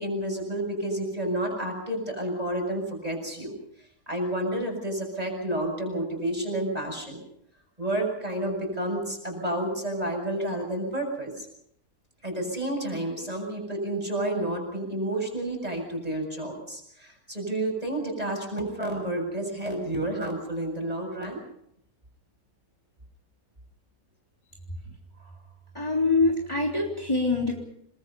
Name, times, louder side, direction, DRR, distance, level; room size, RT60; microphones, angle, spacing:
voice 1, 0.0-3.6 4.1-7.2 7.8-11.5 12.2-21.4, right 1 dB, 25° right, 2 dB, 7.2 m, -30 dB
voice 2, 25.7-27.6, left 3 dB, 20° left, -2 dB, 3.6 m, -25 dB
28.5 x 21.0 x 5.5 m, 0.72 s
omnidirectional pair, 1.6 m